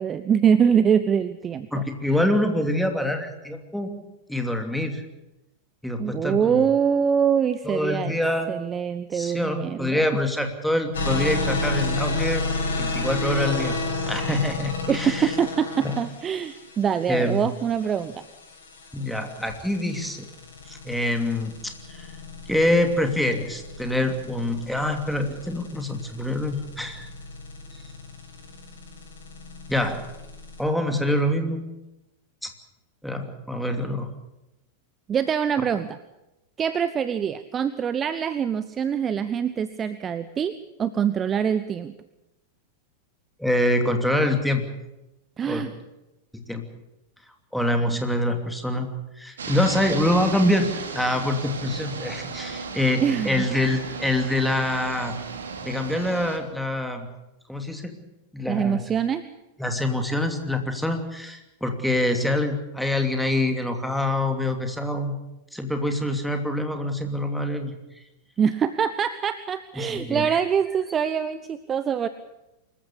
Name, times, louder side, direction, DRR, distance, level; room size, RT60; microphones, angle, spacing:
voice 1, 0.0-1.8 2.1-2.2 6.0-8.1 8.5-10.0 14.9-18.2 35.1-36.0 36.6-41.9 45.4-45.7 53.0-53.5 58.5-59.2 68.4-72.1, right 7 dB, 25° right, 13 dB, 0.8 m, -24 dB
voice 2, 1.7-4.0 4.3-5.0 5.8-6.7 7.6-8.5 9.1-12.4 12.8-13.8 14.1-15.3 15.8-15.9 17.1-17.4 18.9-20.3 20.7-22.1 22.5-27.1 29.7-30.0 30.6-31.6 32.4-32.5 33.0-34.1 43.4-44.7 45.4-45.7 46.3-46.6 47.5-48.9 49.2-55.1 55.6-57.1 57.5-58.0 58.3-58.8 59.6-65.2 65.5-67.7 69.8-70.4, left 1 dB, ahead, 5 dB, 2.8 m, -25 dB
sound 1, 10.9-30.6, left 2 dB, 65° left, 7.0 m, -32 dB
sound 2, 49.4-56.4, right 5 dB, 65° right, 2.6 m, -35 dB
25.0 x 14.5 x 8.5 m, 0.95 s
figure-of-eight pair, 90°, 0 cm